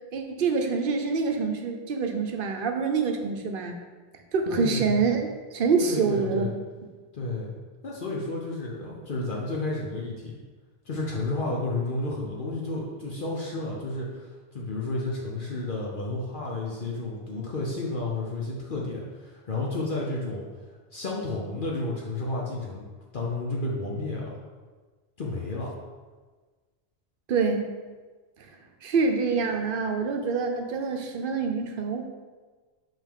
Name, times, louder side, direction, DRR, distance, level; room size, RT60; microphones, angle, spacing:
voice 1, 0.1-3.8 4.3-6.5 27.3-27.7 28.8-32.0, right 5 dB, 60° right, 4 dB, 0.8 m, -26 dB
voice 2, 4.5-5.0 5.8-6.5 7.1-7.6 7.8-10.4 10.8-14.3 14.5-20.5 20.9-22.9 23.1-24.4 25.2-25.7, left 2 dB, 55° left, -3 dB, 0.9 m, -31 dB
5.4 x 5.3 x 3.7 m, 1.4 s
omnidirectional pair, 1.1 m